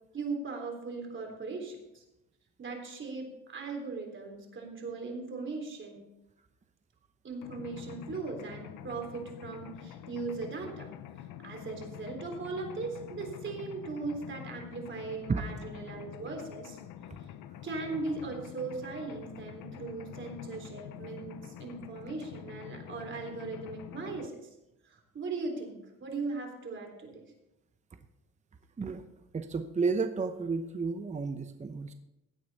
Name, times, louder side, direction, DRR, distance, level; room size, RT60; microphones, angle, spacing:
voice 1, 0.1-2.0 2.6-6.1 7.2-10.9 11.4-16.8 17.6-24.5 24.9-27.2, right 4 dB, 40° right, 3 dB, 3.6 m, -39 dB
Mechanisms, 7.4-24.3, left 10 dB, 85° left, 0.9 m, -46 dB
voice 2, 29.3-31.9, right 4 dB, 20° right, 7 dB, 0.8 m, -31 dB
16.0 x 9.6 x 4.1 m, 0.90 s
cardioid pair, 110°, 32 cm